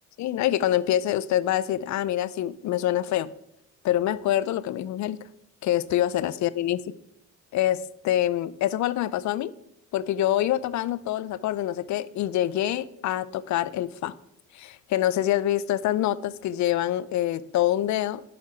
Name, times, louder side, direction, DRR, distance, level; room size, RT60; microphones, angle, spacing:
voice 1, 0.2-3.3 3.8-5.2 5.6-6.8 7.5-9.5 9.9-14.1 14.5-18.2, left 12 dB, 70° left, 17 dB, 0.5 m, -25 dB
7.5 x 5.8 x 4.4 m, 0.78 s
cardioid pair, 90°, 30 cm